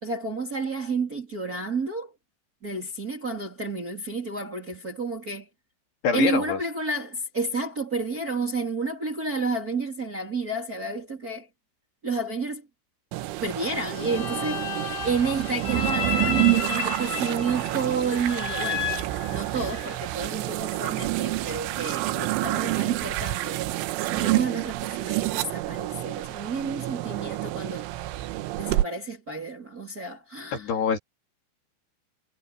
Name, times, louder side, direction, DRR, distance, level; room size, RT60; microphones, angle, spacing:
voice 1, 0.0-2.1 2.6-5.5 6.1-11.5 12.0-12.7 13.4-14.7 15.0-18.9 19.3-23.6 24.1-27.9 28.6-30.7, right 4 dB, 20° right, 2.9 m, -30 dB
voice 2, 6.0-6.6 30.5-31.0, left 6 dB, 60° left, 5.1 m, -25 dB
sound 1, 13.1-28.9, right 16 dB, 85° right, 3.4 m, -28 dB
sound 2, 13.9-20.0, left 5 dB, 75° left, 6.6 m, -32 dB
omnidirectional pair, 5.5 m